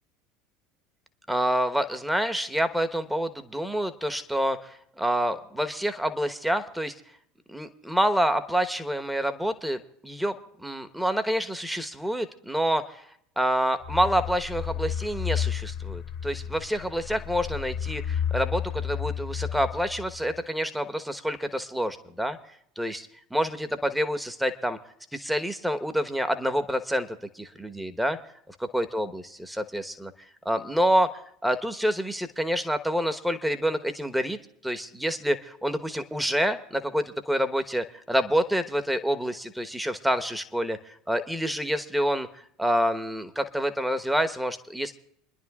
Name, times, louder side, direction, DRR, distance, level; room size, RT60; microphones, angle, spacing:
voice 1, 1.3-6.9 7.5-10.4 10.6-13.0 13.4-22.4 22.8-24.8 25.1-28.2 28.7-30.1 30.4-31.1 31.4-44.9, equal, 5° right, 9 dB, 1.2 m, -27 dB
sound 1, 13.8-20.4, left 8 dB, 50° left, 1.1 m, -32 dB
29.0 x 11.0 x 2.4 m, 0.70 s
figure-of-eight pair, 75°, 0 cm